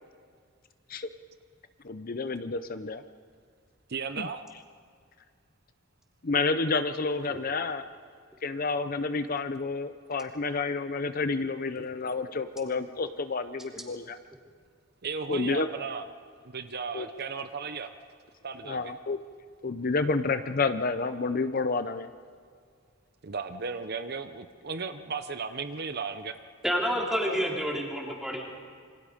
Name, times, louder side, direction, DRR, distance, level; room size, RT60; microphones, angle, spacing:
voice 1, 1.8-3.0 4.2-4.3 6.2-7.8 8.4-14.2 15.3-15.7 16.9-17.1 18.6-19.2 19.6-22.1 27.3-27.4, left 3 dB, 45° left, 10 dB, 0.7 m, -29 dB
voice 2, 3.9-4.4 15.0-16.1 16.4-17.9 18.4-18.9 23.2-26.4, right 5 dB, 50° right, 9 dB, 0.8 m, -35 dB
voice 3, 26.6-28.4, equal, 5° right, -2 dB, 3.6 m, -29 dB
27.5 x 25.0 x 5.1 m, 2.1 s
head